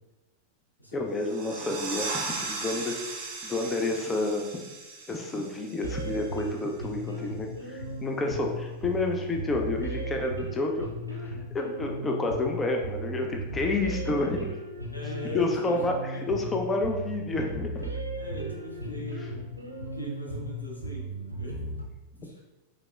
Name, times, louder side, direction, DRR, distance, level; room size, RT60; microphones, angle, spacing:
voice 1, 0.9-3.0 3.4-4.6 5.1-14.5 15.3-16.0 16.3-17.9, left 2 dB, 15° left, 2 dB, 0.5 m, -29 dB
sound 1, 1.1-6.5, right 4 dB, 45° right, 0.6 m, -37 dB
sound 2, 5.8-21.8, right 1 dB, 85° right, 0.5 m, -36 dB
voice 2, 14.9-15.8 16.1-16.2 18.1-19.4 19.9-21.7 22.2-22.4, equal, 85° left, -3 dB, 0.9 m, -40 dB
4.7 x 3.6 x 2.3 m, 1.1 s
figure-of-eight pair, 90°, 0 cm